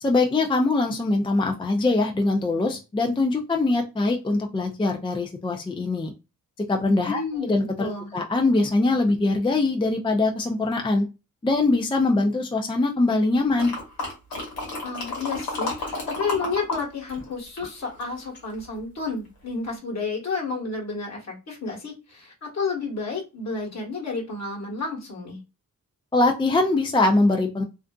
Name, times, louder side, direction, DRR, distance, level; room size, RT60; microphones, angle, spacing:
voice 1, 0.0-6.1 6.7-7.2 7.5-11.0 11.4-13.7 26.1-27.6, left 2 dB, 15° left, 2 dB, 0.4 m, -22 dB
voice 2, 7.0-8.2 14.8-25.4, left 4 dB, 50° left, -1 dB, 1.2 m, -31 dB
sound 1, 13.6-16.8 17.1-18.5 19.1-19.2, left 2 dB, 90° left, 1.1 m, -31 dB
2.5 x 2.4 x 2.2 m, 0.28 s
cardioid pair, 60°, 34 cm